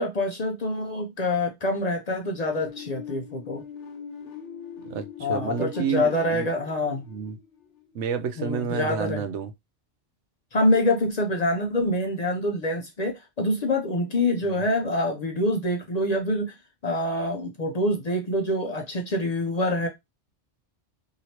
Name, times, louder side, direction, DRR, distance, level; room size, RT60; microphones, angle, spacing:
voice 1, 0.0-3.6 5.2-7.0 8.4-9.2 10.5-16.6 16.8-19.9, left 1 dB, 50° left, 0.5 m, -26 dB
sound 1, 2.5-8.1, left 8 dB, 90° left, 1.0 m, -42 dB
voice 2, 4.8-6.5 7.1-7.4 7.9-9.5, right 7 dB, 90° right, 0.9 m, -30 dB
3.0 x 2.7 x 2.8 m
omnidirectional pair, 1.2 m